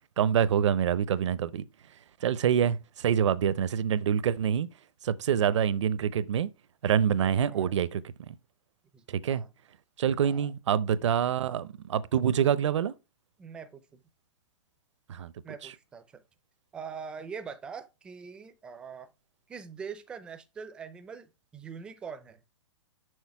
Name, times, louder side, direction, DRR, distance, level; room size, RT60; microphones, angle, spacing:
voice 1, 0.2-1.7 2.2-4.7 5.0-6.5 6.8-8.3 9.1-9.4 10.0-12.9 15.1-15.3 15.6-15.7, right 8 dB, 65° right, 0.7 m, -26 dB
voice 2, 7.1-7.7 8.9-9.5 10.2-10.5 11.0-11.1 13.4-13.8 15.4-16.0 16.7-19.1 19.5-22.4, right 6 dB, 5° right, 0.4 m, -43 dB
6.4 x 6.3 x 4.7 m
hypercardioid pair, 170°, 16 cm